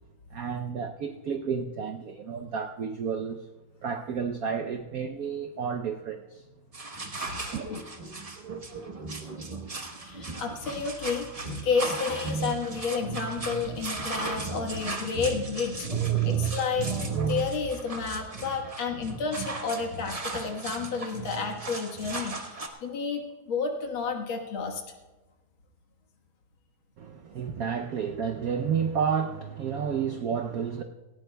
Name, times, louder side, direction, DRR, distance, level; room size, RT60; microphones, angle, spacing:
voice 1, 0.3-3.5 3.8-6.4 7.5-7.7 27.0-30.8, right 6 dB, 85° right, 0.7 m, -31 dB
sound 1, 6.7-22.7, right 5 dB, 55° right, 0.4 m, -34 dB
voice 2, 7.4-7.8 10.0-11.3 11.6-15.9 16.2-16.9 17.3-24.8, left 5 dB, 70° left, 2.2 m, -31 dB
18.5 x 17.0 x 2.2 m
omnidirectional pair, 2.3 m